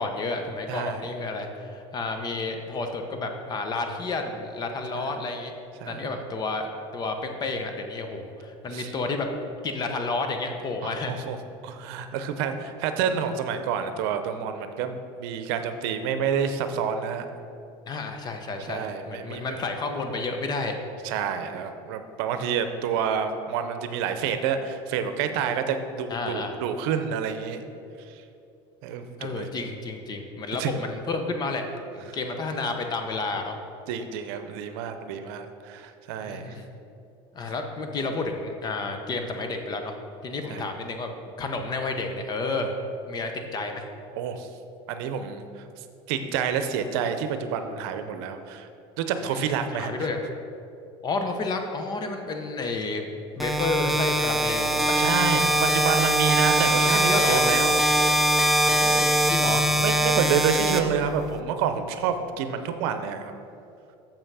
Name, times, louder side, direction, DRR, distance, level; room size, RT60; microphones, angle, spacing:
voice 1, 0.0-5.5 5.8-9.3 9.6-11.2 17.9-20.7 26.1-26.6 29.2-31.7 31.9-33.6 36.2-36.7 37.3-39.9 40.2-41.1 41.4-42.7 43.1-43.9 49.3-49.5 49.8-50.2 51.0-53.1 53.4-55.0 56.3-56.5 56.8-57.5 58.6-59.6, left 3 dB, 35° left, 5 dB, 0.9 m, -31 dB
voice 2, 0.7-1.0 4.9-5.1 5.8-6.1 8.7-8.9 10.8-11.4 11.6-17.3 18.7-19.6 21.0-27.6 28.1-28.2 28.8-29.5 30.6-30.7 32.1-32.2 33.9-36.6 40.5-40.7 44.2-44.5 44.9-45.6 46.1-48.7 49.0-50.1 55.0-57.8 59.8-63.3, right 7 dB, 80° right, 8 dB, 0.7 m, -28 dB
sound 1, 53.4-61.4, equal, ahead, 0.6 m, -22 dB
7.1 x 5.7 x 5.5 m, 2.6 s
supercardioid pair, 120°, 13 cm